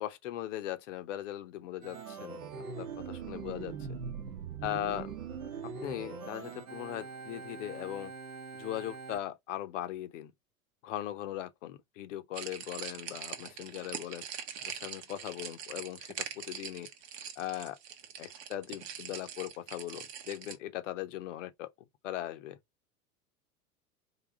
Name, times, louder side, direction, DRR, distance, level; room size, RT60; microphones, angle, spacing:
voice 1, 0.0-2.4 2.8-3.7 4.6-5.1 5.8-8.1 8.5-10.3 10.8-14.2 14.6-16.9 17.4-17.8 18.2-21.7 22.0-22.6, left 13 dB, 55° left, 0.8 m, -39 dB
Organ, 1.8-9.2, right 5 dB, 70° right, 0.9 m, -42 dB
sound 1, 12.3-20.6, right 8 dB, 40° right, 0.8 m, -43 dB
3.9 x 2.8 x 3.7 m
figure-of-eight pair, 85°, 45 cm